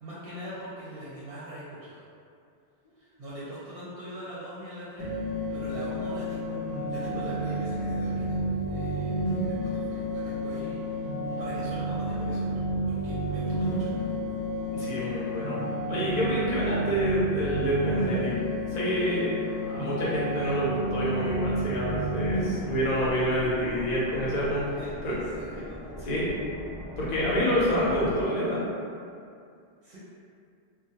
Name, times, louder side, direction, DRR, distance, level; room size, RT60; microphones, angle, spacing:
voice 1, 0.0-2.0 3.0-5.1 5.5-11.1 11.4-12.5 12.9-14.1 24.8-26.1 29.8-30.0, equal, 65° right, -9 dB, 0.7 m, -42 dB
sound 1, 5.0-22.4, right 1 dB, 85° left, 0.9 m, -30 dB
voice 2, 14.7-15.6 15.9-18.3 18.7-25.2 26.0-26.3 27.0-28.6, equal, 45° left, -7 dB, 0.7 m, -28 dB
sound 2, 21.3-28.2, equal, 5° right, 1.0 m, -40 dB
2.3 x 2.0 x 2.7 m, 2.4 s
omnidirectional pair, 1.1 m